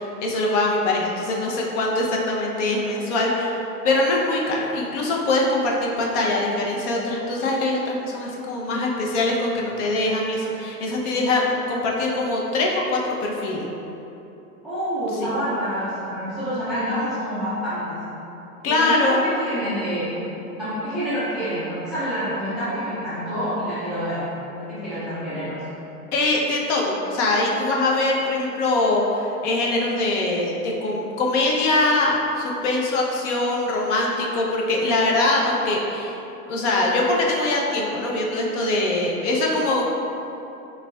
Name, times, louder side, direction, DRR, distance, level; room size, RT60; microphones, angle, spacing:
voice 1, 0.0-13.7 15.2-15.3 18.6-19.2 26.1-36.2 36.5-39.8, left 2 dB, 50° left, -1 dB, 0.8 m, -23 dB
voice 2, 14.6-18.1 18.7-20.2 20.5-25.6, equal, ahead, -13 dB, 0.3 m, -27 dB
4.7 x 3.4 x 2.3 m, 2.9 s
hypercardioid pair, 120°, 45 cm